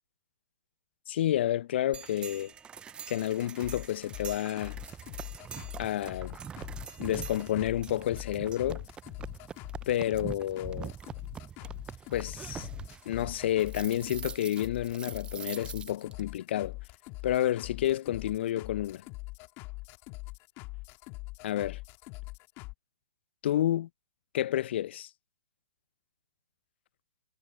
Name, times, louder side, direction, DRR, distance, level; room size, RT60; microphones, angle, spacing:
voice 1, 1.1-2.5 3.1-4.8 5.8-6.4 7.0-8.8 9.9-10.9 12.1-12.7 13.1-16.8 17.2-19.0 21.4-21.8 23.4-23.9 24.3-25.1, left 12 dB, 55° left, 0.6 m, -30 dB
sound 1, 1.9-16.2, right 7 dB, 15° right, 0.4 m, -44 dB
sound 2, 3.4-22.7, left 24 dB, 35° left, 2.0 m, -43 dB
hypercardioid pair, 125°, 7 cm